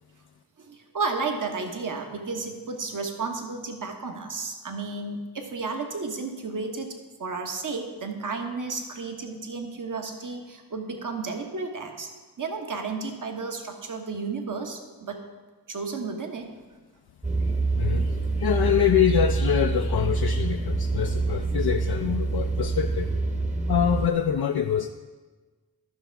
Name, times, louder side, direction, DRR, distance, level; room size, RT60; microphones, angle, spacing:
voice 1, 0.6-6.9 7.2-12.1 12.4-15.2 15.7-16.6, right 4 dB, 50° right, 4 dB, 1.2 m, -32 dB
sound 1, 17.2-24.1, right 3 dB, 20° right, 1.0 m, -26 dB
voice 2, 17.4-23.1 23.7-24.9, left 9 dB, 70° left, 4 dB, 0.6 m, -25 dB
12.0 x 6.0 x 4.6 m, 1.3 s
cardioid pair, 55°, 39 cm